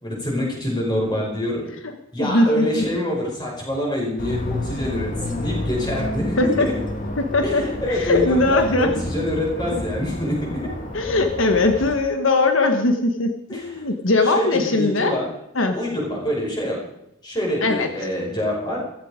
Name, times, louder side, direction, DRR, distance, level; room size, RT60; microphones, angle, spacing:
voice 1, 0.0-1.7 2.1-6.8 7.4-10.7 13.5-13.8 14.2-15.3 15.7-16.8 17.2-18.9, left 1 dB, 20° left, -2 dB, 5.5 m, -26 dB
voice 2, 2.2-2.8 6.4-6.7 7.2-9.0 9.7-9.8 10.9-15.1 15.5-15.7 17.6-17.9, left 2 dB, 75° left, 6 dB, 1.3 m, -20 dB
sound 1, 4.2-12.0, left 1 dB, 40° left, 2.2 m, -30 dB
15.5 x 15.0 x 5.1 m, 0.82 s
head